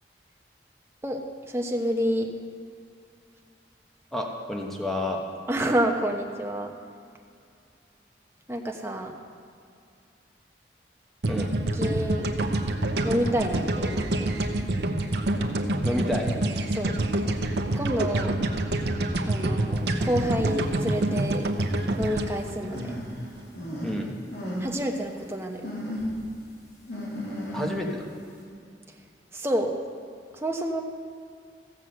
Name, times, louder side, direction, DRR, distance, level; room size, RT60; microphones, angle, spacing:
voice 1, 1.5-2.3 5.5-6.7 8.5-9.1 11.8-12.3 13.0-14.3 16.7-17.0 17.7-18.4 19.3-21.5 22.0-23.0 24.6-25.7 29.3-29.8 30.4-30.8, equal, 15° right, 1 dB, 1.0 m, -28 dB
voice 2, 4.1-5.2 11.3-11.5 15.8-16.3 23.8-24.1 27.5-28.0, left 1 dB, ahead, 0 dB, 1.3 m, -29 dB
sound 1, 11.2-23.4, right 1 dB, 70° right, 0.9 m, -27 dB
sound 2, 19.9-20.1 20.8-20.9 22.7-24.0 24.3-24.7 25.1-25.2 25.6-26.2 26.9-27.9, equal, 70° left, 3.6 m, -34 dB
15.0 x 6.2 x 7.8 m, 2.4 s
head